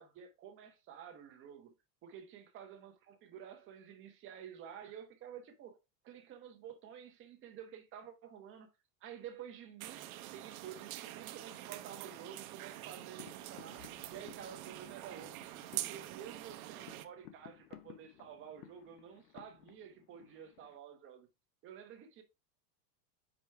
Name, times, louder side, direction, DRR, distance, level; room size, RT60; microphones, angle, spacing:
voice 1, 0.0-1.7 2.0-5.8 6.0-8.7 9.0-15.5 15.7-21.3 21.6-22.2, right 8 dB, 25° right, 1.0 m, -51 dB
sound 1, 9.8-17.0, right 15 dB, 60° right, 0.8 m, -45 dB
sound 2, 13.2-20.8, left 12 dB, 75° left, 1.0 m, -57 dB
5.0 x 5.0 x 4.6 m
supercardioid pair, 165°, 48 cm